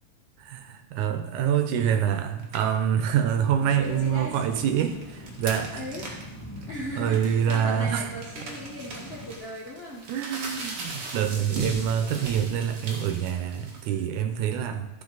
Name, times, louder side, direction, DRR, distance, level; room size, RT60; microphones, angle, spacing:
voice 1, 0.4-5.8 7.0-8.0 10.1-14.9, right 8 dB, 85° right, 7 dB, 2.3 m, -26 dB
sound 1, 2.4-2.8 3.7-6.2 6.6-6.7 7.0-14.0, right 3 dB, 55° right, 2.4 m, -38 dB
sound 2, 3.6-9.4, left 1 dB, 15° left, 1.4 m, -42 dB
voice 2, 3.8-4.6 5.7-6.4 6.7-10.1, equal, 80° left, -3 dB, 0.5 m, -38 dB
13.5 x 6.7 x 4.0 m, 1.0 s
omnidirectional pair, 3.4 m